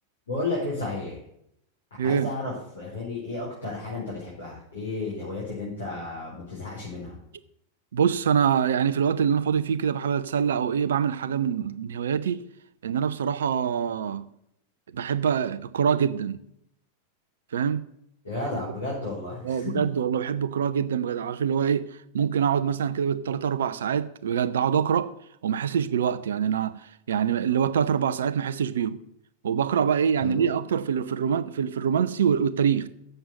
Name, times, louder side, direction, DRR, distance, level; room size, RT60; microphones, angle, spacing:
voice 1, 0.3-1.2 2.0-7.1 18.2-19.8 30.2-30.4, left 2 dB, 70° left, 4.8 m, -33 dB
voice 2, 2.0-2.3 7.9-12.4 12.8-14.3 14.9-16.4 17.5-17.8 18.5-18.6 19.4-21.9 22.1-25.1 25.4-26.8 27.1-29.0 29.4-32.9, right 7 dB, 65° right, 0.6 m, -25 dB
7.8 x 6.8 x 8.2 m
figure-of-eight pair, 90°, 0 cm